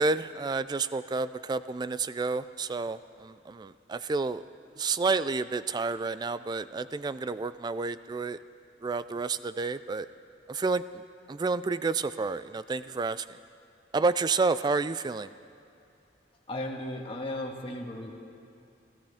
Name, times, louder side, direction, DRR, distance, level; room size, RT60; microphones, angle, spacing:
voice 1, 0.0-4.4 4.8-8.4 8.8-10.1 10.5-11.0 11.3-13.4 13.9-15.3, right 4 dB, 25° right, 14 dB, 0.3 m, -30 dB
voice 2, 16.5-18.1, left 1 dB, 30° left, 0 dB, 1.7 m, -35 dB
28.0 x 14.5 x 3.5 m, 2.7 s
head